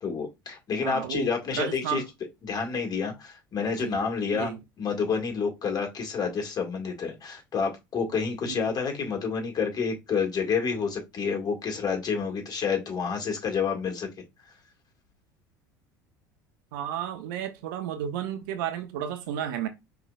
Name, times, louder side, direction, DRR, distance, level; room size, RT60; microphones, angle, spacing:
voice 1, 0.0-2.0 2.4-4.5 4.8-14.1, left 5 dB, 35° left, 2.0 m, -29 dB
voice 2, 0.8-2.0 3.8-4.0 4.3-4.6 8.4-8.7 16.7-19.7, right 10 dB, 65° right, 0.8 m, -32 dB
5.5 x 3.3 x 2.4 m
figure-of-eight pair, 70°, 11 cm